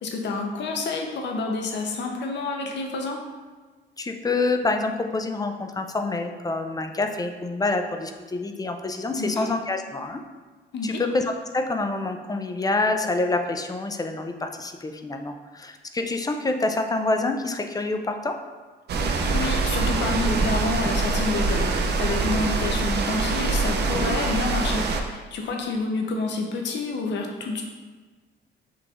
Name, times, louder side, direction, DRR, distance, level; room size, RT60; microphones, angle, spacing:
voice 1, 0.0-3.2 9.2-9.5 10.7-11.0 19.3-27.6, left 3 dB, 65° left, 2 dB, 0.7 m, -28 dB
voice 2, 4.0-10.2 10.8-18.3, left 2 dB, 20° left, 5 dB, 0.4 m, -27 dB
sound 1, 18.9-25.0, right 3 dB, 55° right, 0.5 m, -24 dB
5.9 x 3.1 x 2.5 m, 1.4 s
cardioid pair, 90°, 20 cm